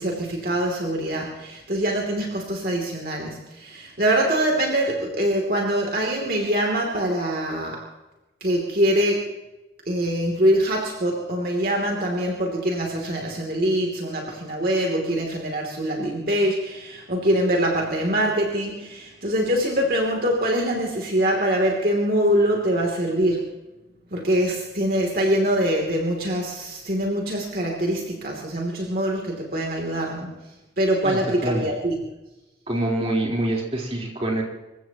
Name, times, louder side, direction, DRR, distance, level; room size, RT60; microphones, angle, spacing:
voice 1, 0.0-7.8 8.4-9.2 9.9-23.4 24.1-30.3 30.8-31.9, right 1 dB, 55° right, -1 dB, 2.9 m, -24 dB
voice 2, 31.0-31.6 32.7-34.4, right 1 dB, 35° right, -2 dB, 4.0 m, -25 dB
27.0 x 15.5 x 3.0 m, 1.0 s
head